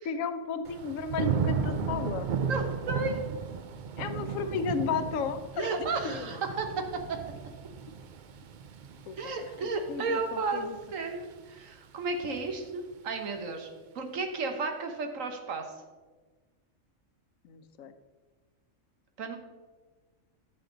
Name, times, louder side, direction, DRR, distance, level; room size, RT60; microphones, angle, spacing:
voice 1, 0.0-2.3 4.0-5.7 6.0-6.3 9.1-9.3 9.9-10.8 17.4-17.9, left 5 dB, 90° left, 10 dB, 1.1 m, -33 dB
Thunder / Rain, 0.6-11.6 12.0-12.5, right 6 dB, 55° right, 0.5 m, -35 dB
voice 2, 2.4-3.2 5.6-6.8 9.2-13.7 13.9-15.6 19.2-19.4, right 3 dB, 85° right, 5 dB, 1.5 m, -33 dB
11.0 x 6.9 x 3.9 m, 1.3 s
omnidirectional pair, 1.3 m